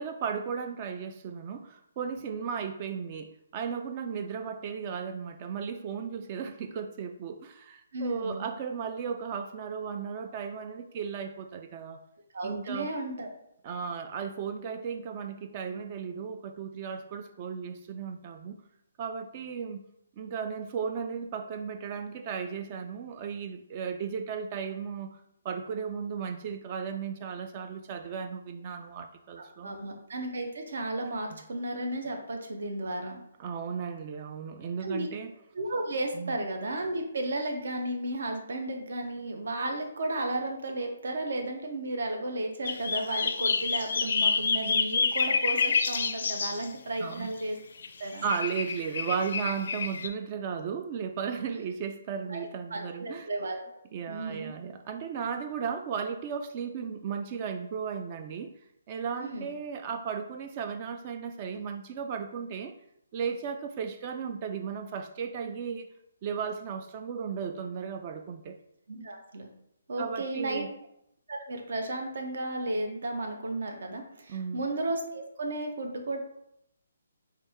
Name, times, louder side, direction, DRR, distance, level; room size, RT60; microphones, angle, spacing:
voice 1, 0.0-12.0 12.4-12.9 13.6-18.6 19.0-19.8 20.2-25.2 25.4-29.7 33.4-35.3 36.1-36.3 47.0-47.3 48.2-53.3 53.9-58.5 58.9-62.7 63.1-65.9 66.2-68.6 70.0-70.7 74.3-74.6, right 6 dB, 35° right, 6 dB, 0.3 m, -35 dB
voice 2, 7.9-8.5 12.3-13.3 29.4-33.2 34.8-35.1 35.5-47.6 48.0-48.3 52.3-53.6 54.1-54.5 59.2-59.5 68.9-69.5 69.9-70.6 71.3-76.2, right 2 dB, 65° right, 3 dB, 0.8 m, -34 dB
sound 1, 42.6-46.7 47.8-47.9 48.2-50.1, left 5 dB, 60° left, 0.4 m, -28 dB
4.2 x 2.7 x 3.5 m, 0.78 s
figure-of-eight pair, 140°, 0 cm